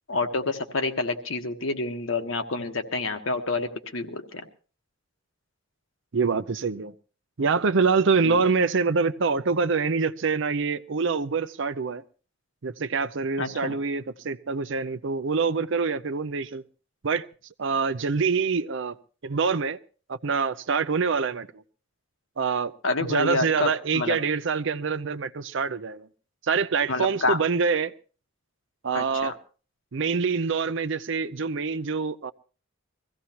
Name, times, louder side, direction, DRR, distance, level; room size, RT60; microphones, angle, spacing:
voice 1, 0.1-4.5 8.2-8.4 13.4-13.8 22.8-24.2 26.9-27.4 28.9-29.3, left 3 dB, 75° left, 1.3 m, -28 dB
voice 2, 6.1-6.9 7.4-12.0 12.6-16.6 17.0-17.2 17.6-19.0 19.2-19.8 20.1-21.6 22.4-22.7 23.1-26.1 26.4-27.9 28.8-29.3 29.9-32.3, right 5 dB, 65° right, 0.6 m, -25 dB
22.5 x 15.5 x 3.0 m
head